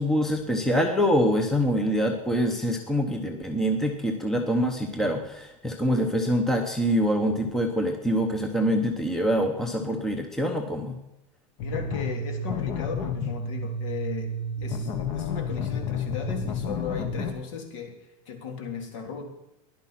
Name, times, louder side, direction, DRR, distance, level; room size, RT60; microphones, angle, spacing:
voice 1, 0.0-11.0, equal, ahead, 4 dB, 0.9 m, -25 dB
voice 2, 11.6-14.3 14.6-17.9 18.3-19.3, left 6 dB, 60° left, 3 dB, 3.5 m, -36 dB
sound 1, 11.6-17.3, left 3 dB, 35° left, 1.3 m, -30 dB
16.0 x 11.0 x 5.8 m, 0.88 s
supercardioid pair, 175°, 18 cm